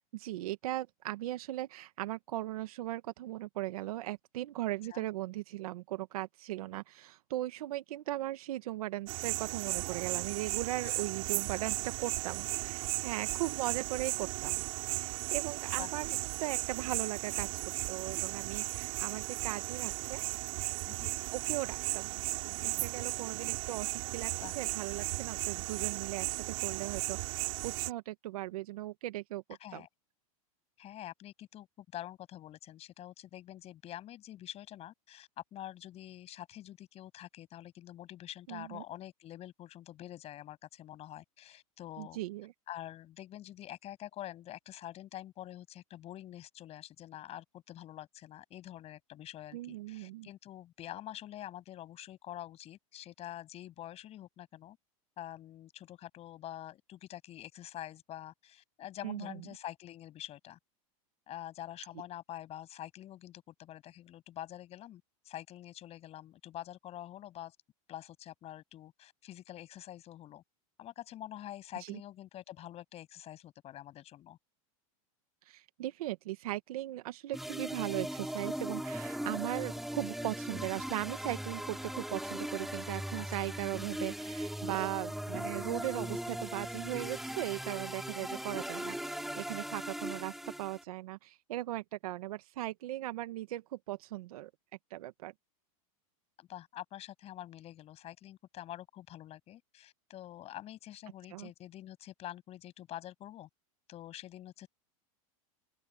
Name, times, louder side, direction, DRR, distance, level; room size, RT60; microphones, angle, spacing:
voice 1, 0.1-17.5 17.9-20.2 21.3-29.4 29.7-29.8 38.5-38.8 42.0-42.5 49.5-50.3 59.0-59.3 71.8-72.0 75.4-94.5 94.9-95.3 101.3-101.5, right 15 dB, 80° right, 1.5 m, -38 dB
sound 1, 9.1-27.9, right 24 dB, 60° right, 3.7 m, -36 dB
voice 2, 30.8-42.2 42.7-54.8 55.2-60.6 61.3-67.6 67.9-70.4 70.8-74.4 83.1-83.3 88.2-88.4 96.4-103.5 103.9-104.7, left 13 dB, 35° left, 7.5 m, -46 dB
sound 2, 77.3-90.8, equal, ahead, 4.2 m, -39 dB
open air
supercardioid pair, 140°, 19 cm